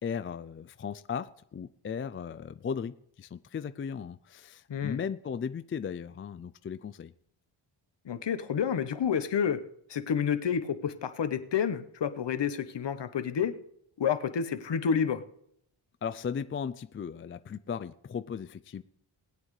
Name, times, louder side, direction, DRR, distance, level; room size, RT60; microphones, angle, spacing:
voice 1, 0.0-7.1 16.0-18.8, left 7 dB, 30° left, 13 dB, 0.3 m, -36 dB
voice 2, 4.7-5.0 8.0-9.6 9.9-13.6 14.0-15.2, left 7 dB, 55° left, 10 dB, 1.1 m, -29 dB
20.0 x 8.8 x 3.2 m, 0.71 s
cardioid pair, 90°, 50 cm